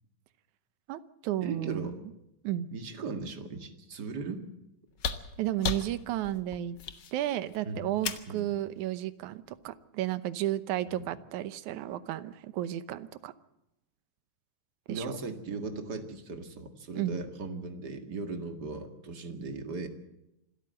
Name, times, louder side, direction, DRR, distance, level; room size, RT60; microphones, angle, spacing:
voice 1, 0.9-2.0 2.4-2.7 5.4-6.8 7.1-13.3 14.9-15.2 17.0-17.2, right 13 dB, 75° right, 14 dB, 2.2 m, -33 dB
voice 2, 1.4-2.0 2.7-4.5 7.7-7.9 8.3-8.5 10.9-11.2 14.9-19.9, right 4 dB, 35° right, 6 dB, 2.2 m, -38 dB
sound 1, 4.9-8.4 9.8-9.9, left 6 dB, 55° left, 1.2 m, -36 dB
26.0 x 13.0 x 7.8 m, 0.90 s
omnidirectional pair, 3.6 m